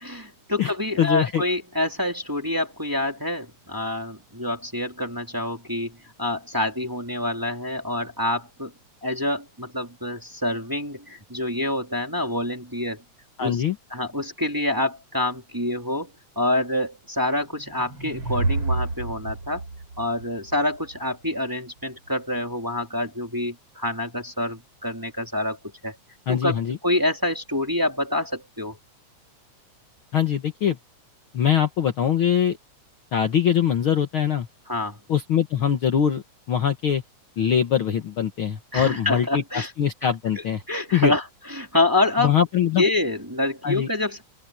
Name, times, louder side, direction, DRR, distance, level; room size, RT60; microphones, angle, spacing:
voice 1, 0.0-8.7 9.0-13.0 13.4-13.6 13.9-19.6 20.0-25.6 25.8-25.9 26.3-28.8 34.7-35.0 38.7-39.7 40.3-42.3 42.8-44.2, left 1 dB, 5° right, 2.7 m, -27 dB
voice 2, 1.0-1.4 13.4-13.8 26.3-26.8 30.1-30.8 31.3-32.6 33.1-34.5 35.1-37.0 37.4-40.6 40.9-41.1 42.2-42.8 43.6-43.9, left 9 dB, 50° left, 1.8 m, -22 dB
sound 1, 17.5-20.9, right 3 dB, 40° right, 5.1 m, -29 dB
open air
omnidirectional pair, 3.5 m